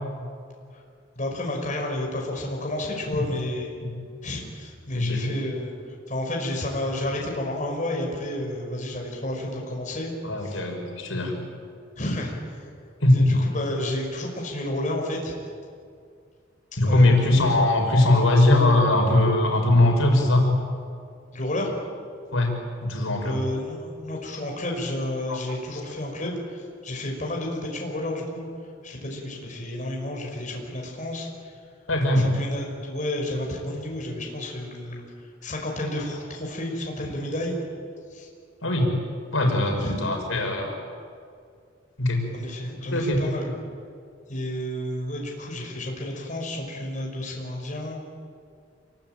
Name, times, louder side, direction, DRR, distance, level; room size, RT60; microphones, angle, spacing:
voice 1, 1.2-3.7 4.2-5.7 6.1-10.1 10.4-10.7 12.0-12.7 13.1-15.3 16.8-17.1 21.3-21.8 23.2-28.5 28.8-31.5 32.3-37.6 38.1-38.3 39.8-39.9 42.3-43.6 44.3-48.0, left 1 dB, 40° left, 0 dB, 5.6 m, -31 dB
voice 2, 4.9-5.3 10.2-11.4 13.0-13.4 16.8-20.4 22.3-22.5 22.8-23.4 25.3-25.4 25.7-25.8 31.9-32.3 38.6-38.9 39.3-40.8 42.0-42.2 42.9-43.2, left 1 dB, 90° left, 2 dB, 5.6 m, -20 dB
27.5 x 23.0 x 9.0 m, 2.2 s
head